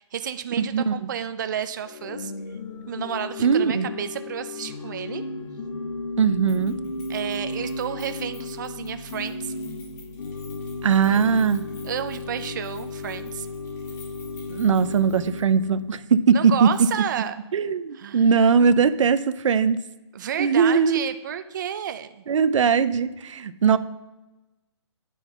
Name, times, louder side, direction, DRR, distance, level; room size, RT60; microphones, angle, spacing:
voice 1, 0.0-2.3 2.9-5.2 7.1-9.5 11.1-11.4 11.8-13.5 16.3-17.3 17.9-18.4 20.1-22.2, right 9 dB, 40° right, 10 dB, 0.4 m, -31 dB
Organ / Church bell, 1.8-16.0, left 2 dB, 75° left, 0.9 m, -34 dB
voice 2, 3.4-3.9 6.2-6.8 10.8-11.7 14.5-16.9 17.5-19.8 20.4-21.0 22.3-23.8, right 6 dB, 85° right, 14 dB, 0.5 m, -20 dB
Keys jangling, 6.5-15.6 15.9-16.0 16.7-17.2 17.5-17.6, left 4 dB, 35° left, 2.2 m, -52 dB
9.2 x 3.9 x 5.6 m, 1.1 s
hypercardioid pair, 170°, 16 cm